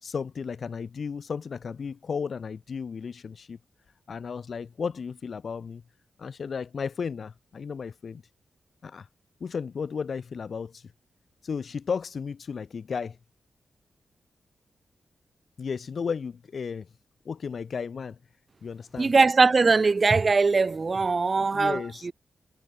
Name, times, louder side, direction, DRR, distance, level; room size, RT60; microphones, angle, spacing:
voice 1, 0.0-3.6 4.1-5.8 6.2-8.2 8.8-9.1 9.4-10.8 11.4-13.2 15.6-16.9 17.3-18.2 18.6-19.1 21.4-22.1, left 6 dB, 65° left, 1.8 m, -34 dB
voice 2, 19.0-22.1, right 4 dB, 45° right, 2.5 m, -21 dB
supercardioid pair, 45°, 0 cm